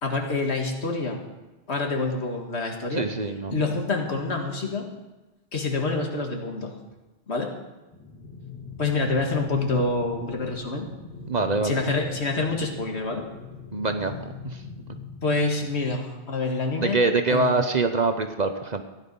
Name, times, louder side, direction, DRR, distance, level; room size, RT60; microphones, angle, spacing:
voice 1, 0.0-1.2 1.7-3.1 3.5-4.9 5.5-6.7 7.3-7.5 8.8-10.9 11.6-13.3 15.2-17.0 17.3-17.5, left 3 dB, 70° left, 2 dB, 2.1 m, -27 dB
voice 2, 2.9-3.6 11.3-11.8 13.7-14.2 14.4-14.6 16.8-18.8, right 3 dB, 40° right, 7 dB, 0.8 m, -24 dB
sound 1, 7.9-15.9, left 4 dB, 25° left, 3.5 m, -41 dB
15.5 x 10.5 x 5.4 m, 1.1 s
omnidirectional pair, 1.2 m